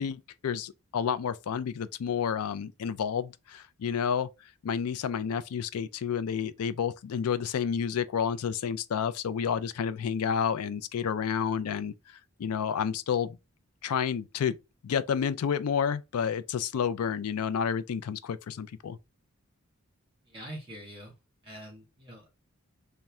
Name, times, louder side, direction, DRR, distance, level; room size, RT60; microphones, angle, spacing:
voice 1, 0.0-4.3 4.6-11.9 12.4-13.4 13.8-14.5 14.8-19.0, left 7 dB, 85° left, 0.4 m, -30 dB
voice 2, 20.3-21.1 21.4-22.4, right 1 dB, 25° right, 2.0 m, -44 dB
4.2 x 2.2 x 3.5 m
head